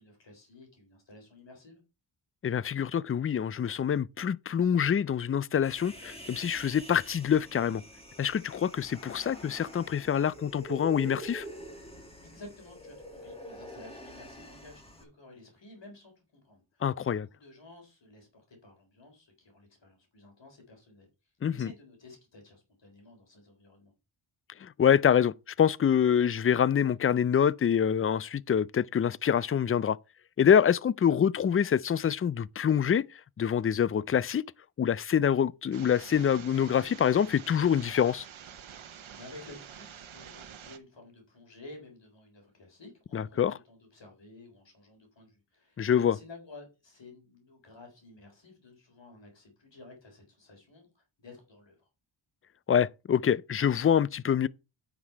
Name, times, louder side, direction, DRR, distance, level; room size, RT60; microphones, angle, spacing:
voice 1, 0.0-1.8 12.2-21.1 21.5-23.9 38.8-51.8, left 2 dB, 65° left, 3.8 m, -52 dB
voice 2, 2.4-7.8 8.2-11.4 16.8-17.3 21.4-21.7 24.6-30.0 30.4-33.1 33.4-34.4 34.8-38.2 43.1-43.6 45.8-46.2 52.7-54.5, left 8 dB, 30° left, 0.4 m, -26 dB
Human voice, 5.6-15.0, right 1 dB, 10° left, 2.1 m, -46 dB
sound 1, 35.7-40.8, right 8 dB, 80° right, 1.0 m, -48 dB
9.5 x 6.0 x 4.6 m
wide cardioid pair, 80°, 47 cm